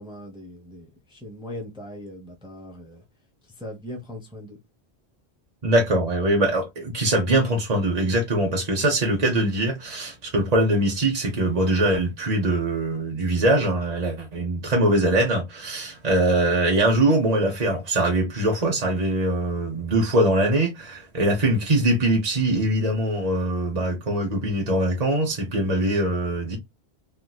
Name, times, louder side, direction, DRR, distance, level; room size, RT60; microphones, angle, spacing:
voice 1, 0.0-3.0 3.6-4.6, left 1 dB, 5° right, 0.9 m, -39 dB
voice 2, 5.6-26.6, right 1 dB, 40° right, 1.1 m, -22 dB
3.4 x 2.9 x 2.3 m
omnidirectional pair, 1.1 m